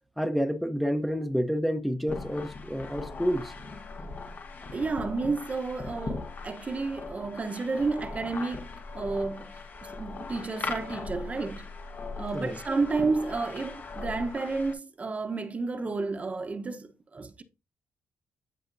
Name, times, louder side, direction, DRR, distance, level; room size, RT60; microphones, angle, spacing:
voice 1, 0.2-3.5 12.3-12.6, equal, ahead, 0.8 m, -29 dB
sound 1, 2.1-14.7, left 3 dB, 45° left, 1.1 m, -39 dB
voice 2, 4.7-11.7 12.2-17.4, right 3 dB, 30° right, 0.9 m, -31 dB
14.0 x 5.0 x 2.6 m
cardioid pair, 95°, 4 cm